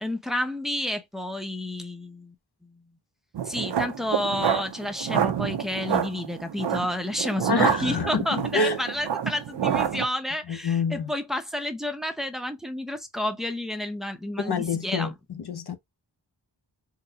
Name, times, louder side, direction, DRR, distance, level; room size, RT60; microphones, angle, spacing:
voice 1, 0.0-2.3 2.6-2.8 3.5-15.1, left 1 dB, ahead, 0.6 m, -30 dB
sound 1, 3.3-10.1, right 8 dB, 70° right, 0.6 m, -28 dB
voice 2, 7.5-8.8 10.5-11.1 14.4-15.1 15.5-15.8, left 4 dB, 60° left, 0.7 m, -26 dB
3.9 x 2.0 x 2.7 m
wide cardioid pair, 95°, 44 cm